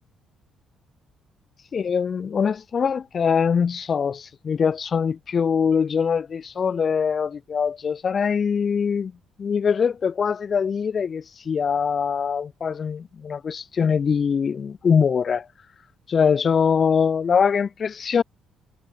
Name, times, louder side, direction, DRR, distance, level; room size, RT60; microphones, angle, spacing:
voice 1, 1.7-9.1 9.4-15.5 16.1-18.2, left 6 dB, 40° left, 3.8 m, -23 dB
cardioid pair, 100°, 0 cm